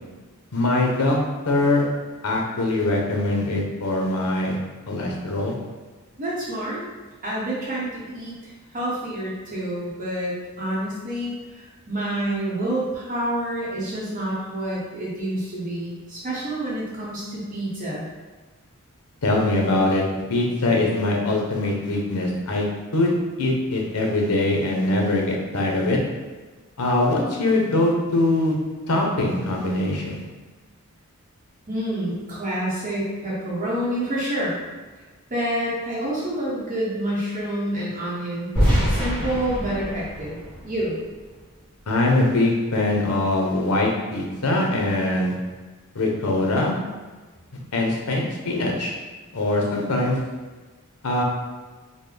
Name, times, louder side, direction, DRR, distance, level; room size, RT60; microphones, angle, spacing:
voice 1, 0.5-1.2 1.5-1.8 2.2-4.6 4.9-5.6 19.2-20.0 20.3-22.6 22.9-26.0 26.8-28.5 28.9-30.2 41.9-45.3 45.9-46.7 47.7-48.9 49.3-50.2 51.0-51.2, left 2 dB, 85° left, -1 dB, 0.8 m, -22 dB
voice 2, 6.2-6.8 7.2-8.3 8.7-18.1 31.7-34.6 35.3-38.5 38.9-41.0, right 1 dB, 40° right, -7 dB, 1.0 m, -28 dB
sound 1, 38.6-41.5, equal, 5° left, 1.1 m, -24 dB
3.9 x 2.2 x 3.3 m, 1.3 s
head